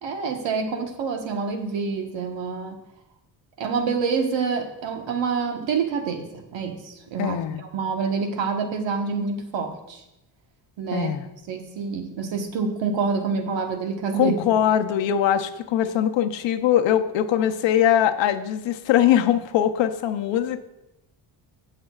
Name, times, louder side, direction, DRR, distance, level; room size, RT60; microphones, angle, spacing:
voice 1, 0.0-2.8 3.6-7.4 7.7-10.0 10.8-11.1 11.5-14.4, right 5 dB, 75° right, 4 dB, 1.3 m, -27 dB
voice 2, 7.2-7.6 10.9-11.3 14.2-20.6, left 10 dB, 75° left, 8 dB, 0.8 m, -21 dB
16.5 x 6.7 x 2.4 m, 0.90 s
cardioid pair, 155°, 45 cm